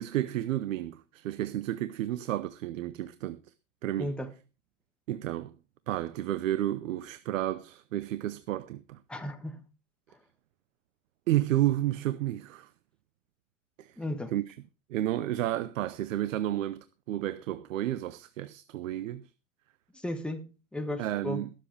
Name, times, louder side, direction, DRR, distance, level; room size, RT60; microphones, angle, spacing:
voice 1, 0.0-3.4 3.8-4.1 5.1-5.6 5.9-9.0 11.3-12.7 13.8-13.9 14.3-14.6 14.9-19.3 21.0-21.5, right 13 dB, 85° right, 0.8 m, -31 dB
voice 2, 4.0-4.3 9.1-9.6 14.0-14.3 20.0-21.4, left 1 dB, 5° left, 1.4 m, -35 dB
21.5 x 7.7 x 3.3 m
supercardioid pair, 135°, 38 cm